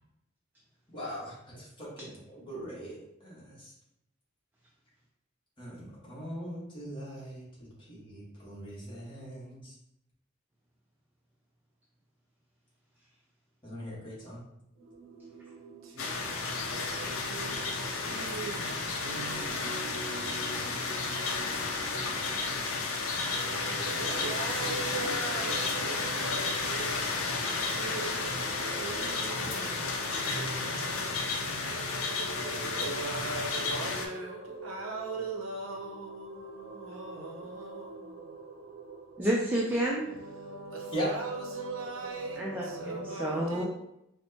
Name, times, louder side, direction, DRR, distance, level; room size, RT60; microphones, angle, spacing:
voice 1, 0.9-3.7 5.6-9.7 13.6-14.4 40.9-41.1, equal, 25° left, 1.2 m, -40 dB
voice 2, 14.8-39.3 40.3-43.6, right 3 dB, 80° right, 0.6 m, -40 dB
sound 1, 16.0-34.1, left 3 dB, 90° left, 0.5 m, -32 dB
voice 3, 24.7-25.1 27.4-27.6 29.4-29.8 39.2-40.1 42.4-43.6, right 1 dB, 10° right, 0.3 m, -32 dB
4.3 x 2.1 x 2.7 m
head